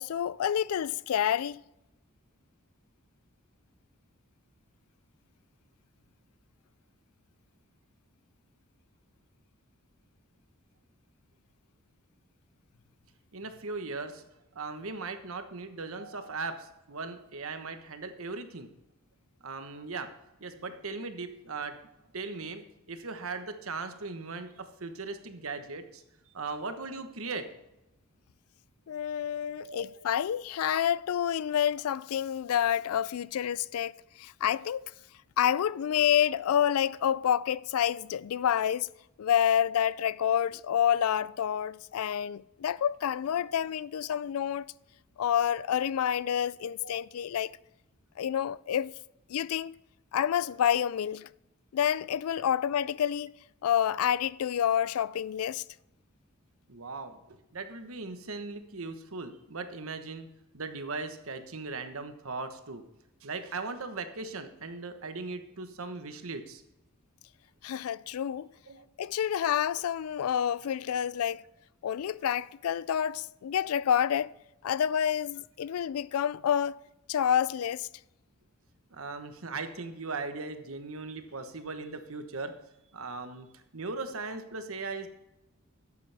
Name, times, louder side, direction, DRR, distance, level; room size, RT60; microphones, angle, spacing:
voice 1, 0.0-1.6 28.9-34.8 35.4-38.9 39.2-44.7 45.2-47.5 48.2-48.9 49.3-49.8 50.1-51.3 51.7-53.3 53.6-55.6 67.6-68.5 69.0-71.4 71.8-74.3 74.6-76.8 77.1-77.9, left 9 dB, 85° left, 0.3 m, -28 dB
voice 2, 13.3-14.2 14.5-18.7 19.4-20.1 20.4-21.8 22.1-26.0 26.3-27.4 29.4-30.0 43.4-43.5 46.2-47.0 56.7-60.3 60.5-62.8 63.2-66.6 68.7-68.8 78.9-82.5 82.9-85.1, right 3 dB, 75° right, 1.2 m, -39 dB
12.0 x 8.4 x 3.5 m
head